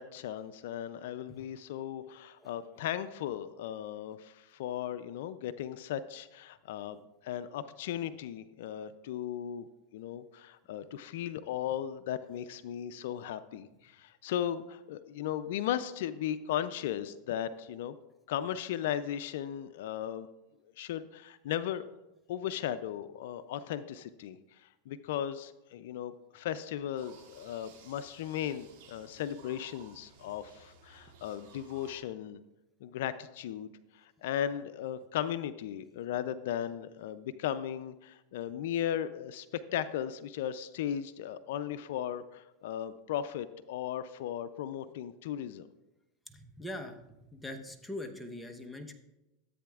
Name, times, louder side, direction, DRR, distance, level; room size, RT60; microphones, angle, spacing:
voice 1, 0.0-7.0 7.2-18.0 18.3-20.3 20.8-21.9 22.3-32.4 32.8-39.5 39.7-45.7, left 10 dB, 75° left, 13 dB, 0.4 m, -36 dB
sound 1, 27.0-32.0, right 6 dB, 70° right, 2.2 m, -57 dB
voice 2, 46.3-48.9, left 1 dB, 5° left, 4 dB, 0.9 m, -42 dB
13.5 x 8.4 x 2.4 m, 1.0 s
supercardioid pair, 120°, 0 cm